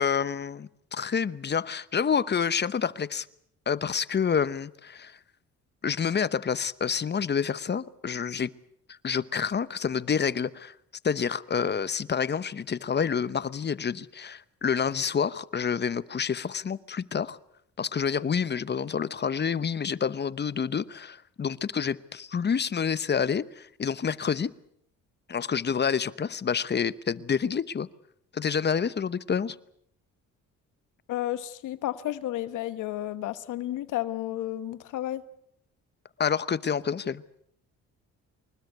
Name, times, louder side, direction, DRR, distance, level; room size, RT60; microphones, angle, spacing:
voice 1, 0.0-3.3 3.7-5.2 5.8-8.5 8.9-10.7 11.0-17.4 17.8-24.5 25.3-27.9 28.3-29.6 36.2-37.2, left 6 dB, 35° left, 0.9 m, -28 dB
voice 2, 31.1-35.2, left 13 dB, 85° left, 1.2 m, -32 dB
25.0 x 20.5 x 8.1 m
cardioid pair, 90°, 30 cm